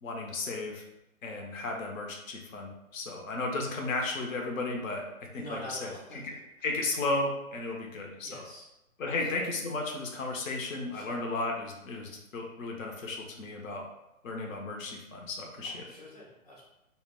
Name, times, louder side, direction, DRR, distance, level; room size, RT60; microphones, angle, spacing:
voice 1, 0.0-0.8 1.2-5.0 5.3-5.9 6.2-6.3 6.6-8.4 9.0-13.8 14.2-15.8, left 2 dB, 65° left, 0 dB, 0.7 m, -34 dB
voice 2, 5.3-6.2 8.2-8.7 9.1-9.4 10.9-11.3 15.6-16.6, equal, 30° left, -6 dB, 0.6 m, -45 dB
2.2 x 2.0 x 3.5 m, 0.91 s
hypercardioid pair, 140°, 42 cm